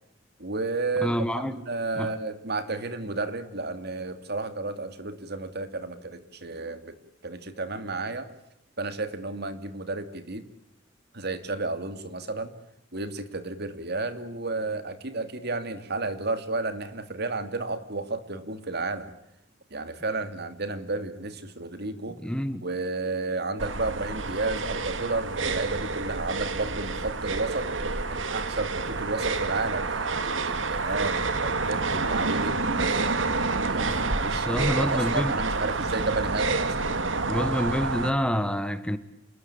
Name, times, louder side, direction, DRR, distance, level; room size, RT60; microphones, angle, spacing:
voice 1, 0.4-7.0 7.2-8.3 8.8-10.4 11.1-12.5 12.9-19.1 19.7-22.2 22.6-27.8 28.1-33.3 33.7-36.9 37.2-37.4, right 3 dB, 60° right, 2.6 m, -32 dB
voice 2, 1.0-1.6 1.9-2.1 22.2-22.7 33.9-34.0 34.3-35.3 37.3-39.0, equal, 5° left, 1.3 m, -27 dB
sound 1, 23.6-38.1, right 3 dB, 80° right, 2.2 m, -28 dB
28.0 x 20.5 x 8.6 m
head